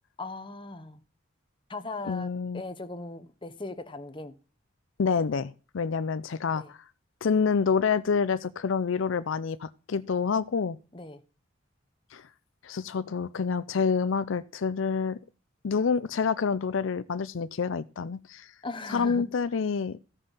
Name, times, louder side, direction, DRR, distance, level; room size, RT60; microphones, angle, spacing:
voice 1, 0.2-1.0 1.7-4.4 6.5-6.7 10.9-11.2 18.6-19.2, left 2 dB, 25° left, 1.0 m, -38 dB
voice 2, 2.1-2.6 5.0-6.8 7.2-10.8 12.1-12.2 12.6-15.2 15.6-18.5 18.9-20.0, left 5 dB, 75° left, 0.5 m, -27 dB
15.5 x 5.5 x 5.5 m
head